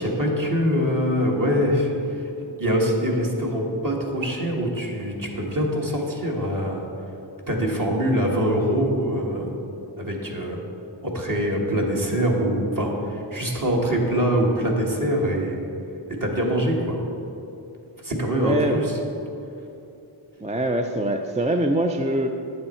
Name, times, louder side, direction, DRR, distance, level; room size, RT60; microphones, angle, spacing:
voice 1, 0.0-1.9 2.6-6.8 7.5-9.5 10.0-10.6 11.0-15.6 16.1-17.0 18.0-19.0, equal, 40° right, -1 dB, 1.8 m, -24 dB
voice 2, 18.4-18.8 20.4-22.3, right 1 dB, 15° right, 4 dB, 0.4 m, -23 dB
9.6 x 7.9 x 4.4 m, 2.8 s
wide cardioid pair, 60°, 49 cm